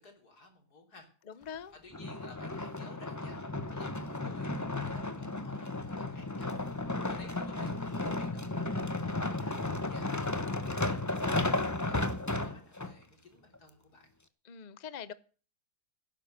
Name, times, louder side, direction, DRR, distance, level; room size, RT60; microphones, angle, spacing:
voice 1, 0.0-1.5 1.8-10.3 10.6-14.1, left 2 dB, 80° left, 4 dB, 4.1 m, -56 dB
voice 2, 1.3-1.7 14.4-15.1, left 7 dB, 40° left, 16 dB, 0.6 m, -43 dB
sound 1, 1.9-12.9 13.6-13.7, left 2 dB, 15° left, 0.9 m, -34 dB
17.0 x 10.5 x 6.6 m, 0.40 s
omnidirectional pair, 1.7 m